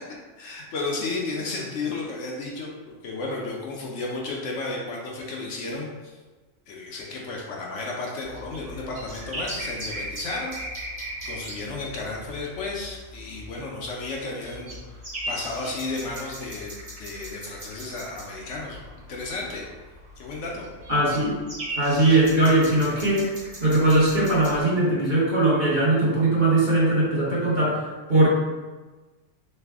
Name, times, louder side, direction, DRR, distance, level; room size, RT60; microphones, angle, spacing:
voice 1, 0.4-6.2 6.7-10.6 11.2-14.8 15.3-19.6 20.2-20.6, left 3 dB, 70° left, -2 dB, 0.9 m, -33 dB
sound 1, 8.2-24.6, right 1 dB, 75° right, 1.4 m, -38 dB
voice 2, 20.9-21.4 21.8-23.2 23.6-27.8 28.1-28.3, right 2 dB, 40° right, -8 dB, 1.0 m, -20 dB
3.2 x 2.0 x 3.4 m, 1.3 s
omnidirectional pair, 1.4 m